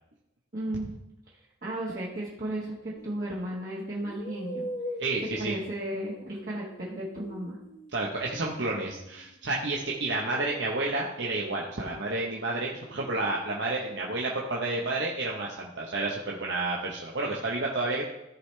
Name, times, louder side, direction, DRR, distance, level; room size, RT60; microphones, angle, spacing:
voice 1, 0.5-0.9 1.6-4.7 5.4-7.6, right 1 dB, 45° right, -6 dB, 1.4 m, -34 dB
sound 1, 3.0-3.2 4.0-9.4 9.8-13.7, left 1 dB, 35° left, 0.9 m, -43 dB
voice 2, 5.0-5.6 7.9-18.0, right 2 dB, 60° right, -2 dB, 0.9 m, -30 dB
14.5 x 4.9 x 3.3 m, 0.89 s
head